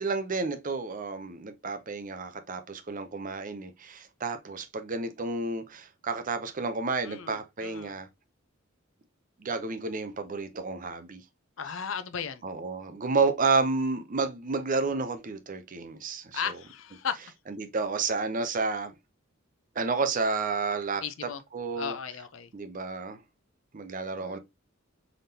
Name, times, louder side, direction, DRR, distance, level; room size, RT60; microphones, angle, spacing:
voice 1, 0.0-8.1 9.4-11.2 12.4-16.6 17.6-18.9 19.8-21.0 21.5-22.0 22.5-23.2 23.7-24.4, right 4 dB, 40° right, 0.6 m, -30 dB
voice 2, 7.0-7.9 11.6-12.4 16.3-17.2 21.0-21.4 21.8-22.5 24.1-24.4, left 7 dB, 75° left, 0.6 m, -36 dB
3.9 x 3.5 x 2.7 m
head